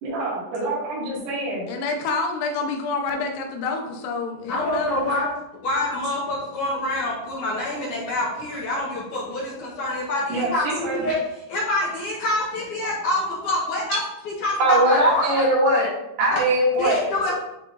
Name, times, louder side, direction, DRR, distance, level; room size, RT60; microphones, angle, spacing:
voice 1, 0.0-1.6 10.3-11.1, right 2 dB, 85° right, -6 dB, 4.1 m, -28 dB
voice 2, 1.7-5.2, left 4 dB, 90° left, 2 dB, 3.0 m, -28 dB
voice 3, 4.5-5.3 5.6-11.2 11.5-15.4 16.8-17.3, left 1 dB, 70° left, -4 dB, 2.1 m, -26 dB
voice 4, 14.6-15.9 16.2-17.0, right 1 dB, 70° right, -4 dB, 3.3 m, -19 dB
10.0 x 3.8 x 2.6 m, 0.87 s
omnidirectional pair, 4.6 m